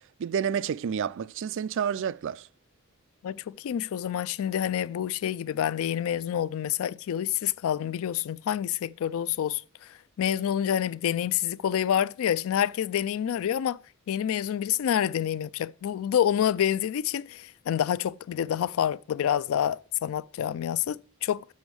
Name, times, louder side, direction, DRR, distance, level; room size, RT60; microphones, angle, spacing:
voice 1, 0.0-2.5, right 7 dB, 60° right, 0.3 m, -30 dB
voice 2, 3.2-9.6 10.2-13.8 14.1-21.4, left 9 dB, 70° left, 0.3 m, -27 dB
7.0 x 6.1 x 6.2 m
head